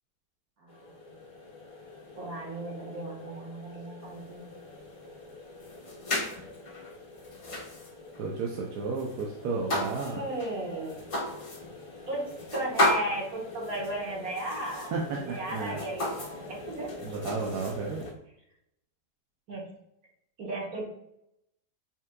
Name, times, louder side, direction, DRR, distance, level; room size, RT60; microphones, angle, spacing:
voice 1, 0.6-1.1 2.2-4.5 4.8-5.0 6.0-6.7 9.9-11.0 12.1-12.2 12.5-16.9 19.5-19.6 20.4-20.8, right 1 dB, 65° right, -4 dB, 1.8 m, -36 dB
sound 1, 0.7-18.1, left 1 dB, 45° left, 0.4 m, -36 dB
voice 2, 8.2-10.2 14.9-15.8 17.0-18.0, right 4 dB, 80° right, -1 dB, 1.2 m, -33 dB
5.6 x 3.6 x 2.3 m, 0.78 s
omnidirectional pair, 1.8 m